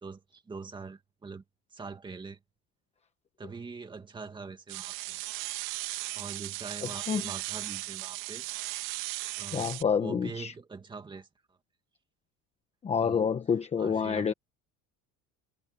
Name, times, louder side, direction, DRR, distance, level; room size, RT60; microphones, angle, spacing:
voice 1, 0.0-1.4 1.7-2.4 3.4-5.2 6.1-8.4 9.4-9.7 10.0-11.3 13.0-13.2 13.8-14.3, right 4 dB, 15° right, 2.2 m, -43 dB
sound 1, 4.7-9.8, right 20 dB, 80° right, 2.6 m, -37 dB
voice 2, 9.5-10.5 12.8-14.3, left 6 dB, 20° left, 1.1 m, -28 dB
cardioid pair, 175°, 34 cm